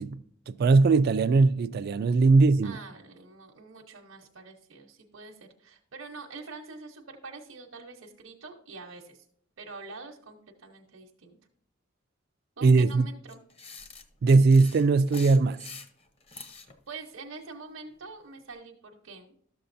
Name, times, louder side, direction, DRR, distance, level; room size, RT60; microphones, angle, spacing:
voice 1, 0.0-2.8 12.6-13.1 14.2-15.6, right 3 dB, 50° right, 0.3 m, -20 dB
voice 2, 2.6-9.3 9.6-11.4 12.6-13.4 16.9-19.4, right 3 dB, 80° right, 0.9 m, -45 dB
sound 1, 13.3-16.7, left 4 dB, 30° left, 0.7 m, -45 dB
12.0 x 6.9 x 2.6 m
head